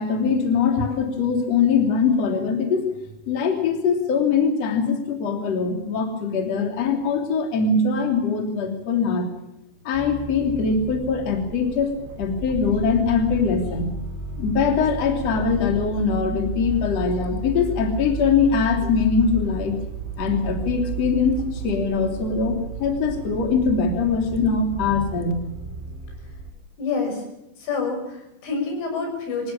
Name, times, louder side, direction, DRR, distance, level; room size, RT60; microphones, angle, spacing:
voice 1, 0.0-2.9 3.3-9.3 9.9-11.9 12.2-13.9 14.4-19.8 20.2-25.3, left 5 dB, 35° left, 4 dB, 3.6 m, -22 dB
sound 1, 9.9-26.5, right 3 dB, 80° right, 6.4 m, -33 dB
voice 2, 26.8-27.2 27.6-29.5, left 4 dB, 65° left, 3 dB, 8.7 m, -27 dB
25.5 x 17.5 x 7.2 m, 0.87 s
omnidirectional pair, 5.9 m